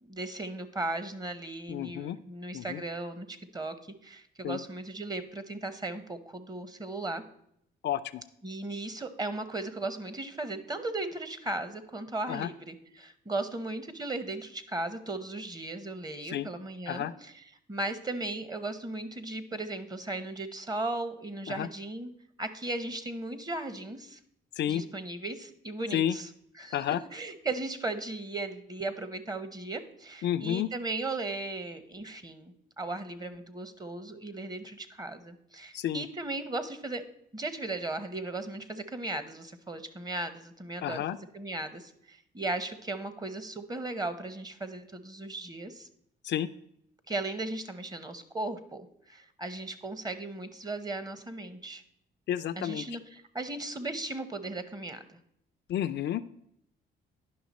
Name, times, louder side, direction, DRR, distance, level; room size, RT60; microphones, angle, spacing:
voice 1, 0.0-3.7 4.0-7.2 8.4-17.3 17.7-22.1 22.4-24.2 24.7-26.3 26.6-26.8 27.1-37.0 37.3-45.9 47.1-51.8 52.6-55.2, right 2 dB, 20° right, 11 dB, 0.9 m, -36 dB
voice 2, 1.7-2.2 2.5-2.8 4.4-4.6 7.8-8.2 12.3-12.5 16.3-16.5 16.9-17.1 21.5-21.7 24.6-24.8 25.9-26.2 26.7-27.0 30.2-30.7 35.7-36.1 40.8-41.2 46.2-46.5 52.3-52.9 55.7-56.2, left 11 dB, 60° left, 12 dB, 0.4 m, -31 dB
10.5 x 5.7 x 4.1 m, 0.73 s
cardioid pair, 90°, 20 cm